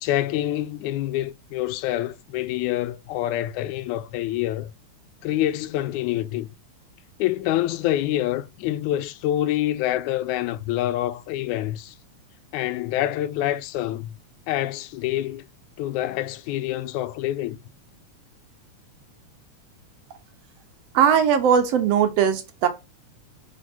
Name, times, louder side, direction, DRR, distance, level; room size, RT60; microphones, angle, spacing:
voice 1, 0.0-4.7 5.2-6.5 7.2-12.0 12.5-14.2 14.5-15.5 15.8-17.6, left 14 dB, 85° left, 2.0 m, -26 dB
voice 2, 20.9-22.7, right 8 dB, 70° right, 1.7 m, -19 dB
5.0 x 4.5 x 4.2 m
omnidirectional pair, 3.3 m